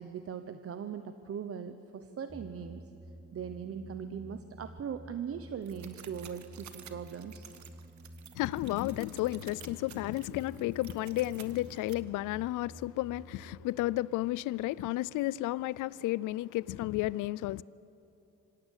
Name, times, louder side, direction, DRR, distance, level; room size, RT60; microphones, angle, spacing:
voice 1, 0.0-2.9 3.3-7.5, right 7 dB, 50° right, 1.0 m, -40 dB
sound 1, 2.3-15.5, right 1 dB, 25° right, 4.6 m, -51 dB
sound 2, 5.6-11.9, right 9 dB, 70° right, 1.5 m, -52 dB
voice 2, 8.3-17.6, left 17 dB, 90° left, 0.5 m, -32 dB
25.5 x 16.5 x 8.2 m
cardioid pair, 90°, 30 cm